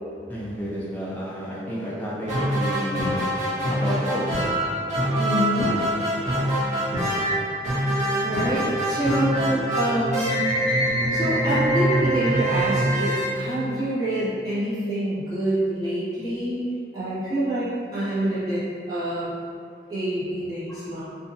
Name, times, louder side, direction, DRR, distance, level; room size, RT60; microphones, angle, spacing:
voice 1, 0.3-3.3 3.7-4.4 6.2-6.4 20.7-20.8, equal, 10° left, -8 dB, 0.5 m, -31 dB
sound 1, 2.3-14.1, right 1 dB, 40° right, 0.8 m, -24 dB
voice 2, 5.2-5.7 8.2-10.4 11.1-16.7 16.9-18.6 18.9-19.3 19.9-21.0, right 1 dB, 20° right, -14 dB, 1.0 m, -26 dB
2.6 x 2.1 x 2.6 m, 2.4 s
head